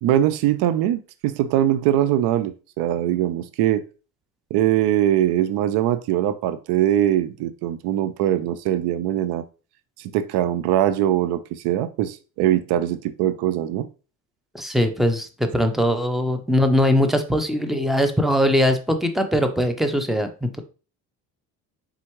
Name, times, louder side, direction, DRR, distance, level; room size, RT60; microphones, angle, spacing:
voice 1, 0.0-3.8 4.5-9.4 10.0-13.9, right 12 dB, 70° right, 0.5 m, -22 dB
voice 2, 14.5-20.6, equal, ahead, 0.7 m, -21 dB
4.3 x 3.6 x 3.0 m
supercardioid pair, 80°, 41 cm